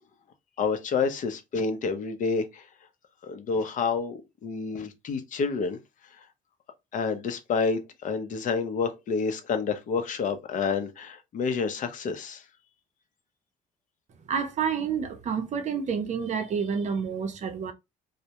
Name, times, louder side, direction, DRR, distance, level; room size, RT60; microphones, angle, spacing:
voice 1, 0.6-2.6 3.2-5.8 6.9-12.4, left 5 dB, 50° left, 0.6 m, -29 dB
voice 2, 14.3-17.7, right 6 dB, 45° right, 0.6 m, -29 dB
2.2 x 2.1 x 2.8 m
cardioid pair, 110°, 17 cm